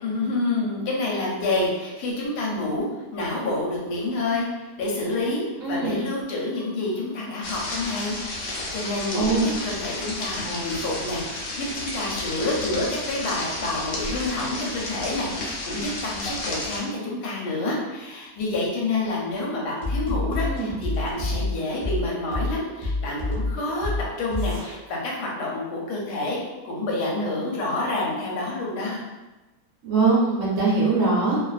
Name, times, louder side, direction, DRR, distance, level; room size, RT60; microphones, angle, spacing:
voice 1, 0.0-23.9 24.2-26.4 26.6-29.0, left 2 dB, 85° left, -3 dB, 1.2 m, -28 dB
voice 2, 5.6-6.0 9.1-9.4 20.3-20.7 29.8-31.4, right 4 dB, 65° right, -5 dB, 0.9 m, -22 dB
sound 1, 7.4-16.8, left 2 dB, 65° left, 0.8 m, -32 dB
sound 2, 19.8-24.7, left 2 dB, 25° right, 0.4 m, -27 dB
2.5 x 2.4 x 2.3 m, 1.1 s
omnidirectional pair, 1.6 m